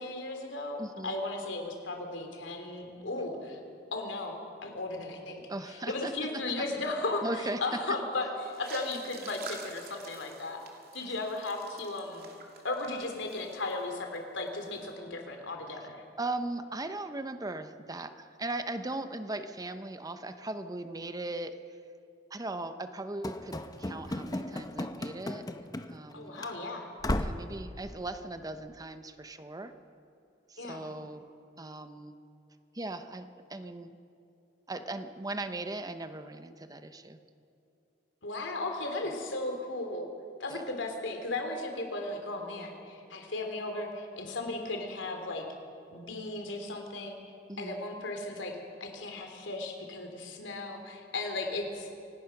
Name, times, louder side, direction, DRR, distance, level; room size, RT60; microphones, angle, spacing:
voice 1, 0.0-3.6 3.9-5.4 5.7-7.2 7.6-10.6 10.9-12.3 12.6-16.0 26.1-26.9 30.6-30.8 38.2-40.1 40.4-45.5 45.9-47.2 47.6-51.9, left 2 dB, 90° left, 4 dB, 3.3 m, -36 dB
voice 2, 0.8-1.1 5.5-6.6 7.2-7.8 15.8-15.9 16.2-21.6 22.3-25.5 25.9-26.4 27.2-29.7 30.5-31.3 31.6-32.1 32.7-34.0 34.7-37.2 40.5-40.6 47.5-47.7, right 2 dB, 20° right, 9 dB, 0.9 m, -38 dB
sound 1, 8.4-14.2 14.4-14.8, right 4 dB, 55° right, 3.0 m, -49 dB
Run / Slam, 23.2-26.1 26.4-26.5 27.0-27.5, left 1 dB, 20° left, 0.9 m, -35 dB
26.5 x 18.0 x 6.0 m, 2.7 s
head